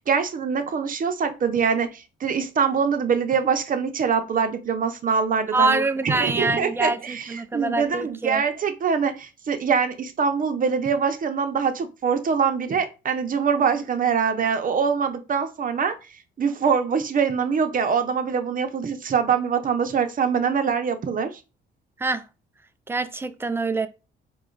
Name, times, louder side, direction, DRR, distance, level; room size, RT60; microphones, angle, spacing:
voice 1, 0.0-15.9 16.4-21.3, right 6 dB, 45° right, 0.8 m, -24 dB
voice 2, 5.5-8.4 22.0-22.3 22.9-23.9, right 3 dB, 10° right, 0.4 m, -25 dB
4.2 x 2.4 x 3.9 m
cardioid pair, 90°, 20 cm